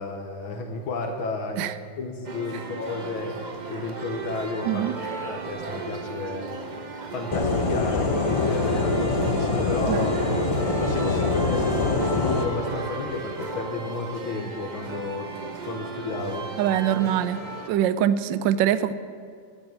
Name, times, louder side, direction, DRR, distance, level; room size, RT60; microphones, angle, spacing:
voice 1, 0.0-6.5 7.1-10.5 10.8-15.3 15.7-16.5, left 3 dB, 75° left, 2 dB, 2.0 m, -32 dB
sound 1, 2.2-17.7, right 3 dB, 30° right, 0.8 m, -35 dB
sound 2, 7.3-12.4, left 3 dB, 55° left, 0.3 m, -24 dB
voice 2, 16.6-17.4 17.7-19.0, right 10 dB, 70° right, 14 dB, 1.2 m, -23 dB
12.5 x 9.3 x 8.9 m, 2.3 s
omnidirectional pair, 2.3 m